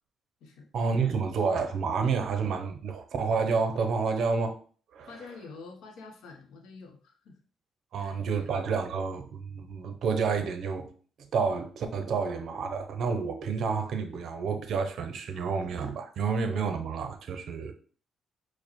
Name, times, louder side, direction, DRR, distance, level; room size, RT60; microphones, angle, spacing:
voice 1, 0.7-4.6 4.9-5.1 7.9-10.9 11.3-17.7, right 5 dB, 65° right, 0.5 m, -29 dB
voice 2, 5.1-7.4 8.0-8.5, left 4 dB, 80° left, 0.6 m, -47 dB
4.7 x 2.0 x 2.9 m
cardioid pair, 90°, 0 cm